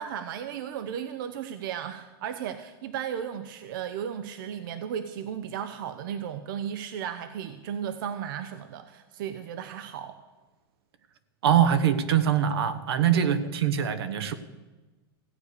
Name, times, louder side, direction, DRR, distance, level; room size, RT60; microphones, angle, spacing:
voice 1, 0.0-10.2 13.1-13.5, right 9 dB, 60° right, 11 dB, 0.7 m, -35 dB
voice 2, 11.4-14.3, right 9 dB, 80° right, 11 dB, 1.2 m, -23 dB
15.5 x 8.3 x 6.6 m, 1.2 s
supercardioid pair, 165°, 13 cm